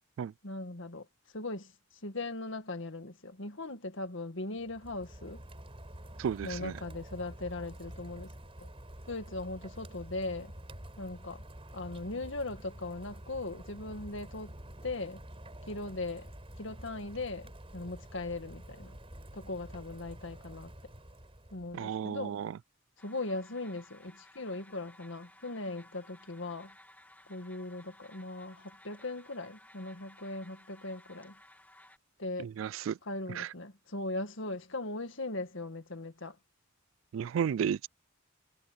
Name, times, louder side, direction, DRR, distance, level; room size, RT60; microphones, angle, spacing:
voice 1, 0.4-1.1 1.3-1.7 2.0-5.4 6.4-8.3 8.6-8.7 9.1-10.5 11.0-11.4 11.7-14.5 14.8-15.2 15.7-16.3 16.6-19.0 19.3-20.7 21.5-22.4 23.0-26.7 27.3-31.4 32.2-32.5 33.1-36.4, left 2 dB, 70° left, 2.0 m, -39 dB
Rain, 4.6-21.9, right 1 dB, 30° right, 4.6 m, -48 dB
voice 2, 6.2-6.7 21.7-22.6 32.4-33.0 33.3-33.5 37.1-37.9, right 8 dB, 75° right, 0.3 m, -33 dB
sound 1, 23.0-32.0, left 1 dB, 10° left, 2.7 m, -58 dB
head